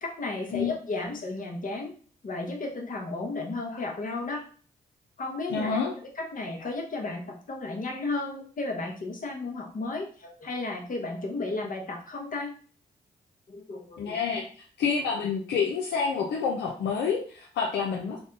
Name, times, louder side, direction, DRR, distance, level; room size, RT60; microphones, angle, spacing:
voice 1, 0.0-1.9 2.2-4.4 5.2-12.5 13.5-14.2, left 2 dB, 50° left, 1 dB, 1.1 m, -34 dB
voice 2, 5.5-5.9 14.0-14.4 14.8-18.2, left 6 dB, 85° left, -1 dB, 0.6 m, -28 dB
3.4 x 2.2 x 3.9 m, 0.43 s
cardioid pair, 60°, 17 cm